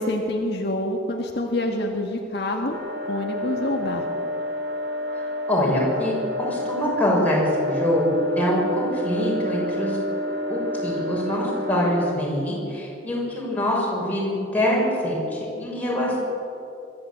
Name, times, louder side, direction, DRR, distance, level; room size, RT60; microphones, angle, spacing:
voice 1, 0.0-2.8 3.1-4.1, left 1 dB, 60° left, 1 dB, 1.7 m, -26 dB
sound 1, 2.7-12.1, left 1 dB, 55° right, 2.2 m, -29 dB
voice 2, 5.1-8.1 8.3-10.0 10.5-16.2, equal, 10° left, -4 dB, 6.4 m, -24 dB
24.0 x 13.5 x 8.7 m, 2.7 s
head